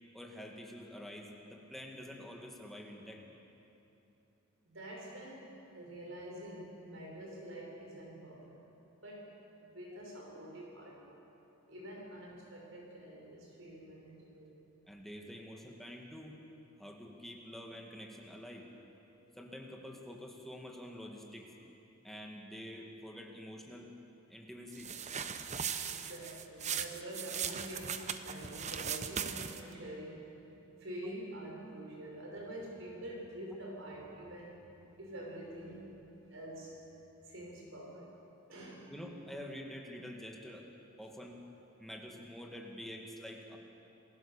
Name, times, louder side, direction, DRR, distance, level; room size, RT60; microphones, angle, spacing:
voice 1, 0.1-3.3 14.9-16.4 16.8-18.7 19.4-21.5 22.0-23.9 24.3-24.9 38.9-40.7 41.0-41.4 41.8-43.6, equal, ahead, 0 dB, 2.1 m, -47 dB
voice 2, 4.6-8.6 9.0-11.2 11.7-14.6 25.8-30.2 30.8-34.7 35.0-35.9 36.3-36.7 37.3-38.1 38.5-38.9, right 1 dB, 65° right, -2 dB, 5.9 m, -46 dB
sound 1, 24.7-29.7, right 7 dB, 35° right, 0.8 m, -39 dB
27.5 x 16.0 x 7.2 m, 2.9 s
head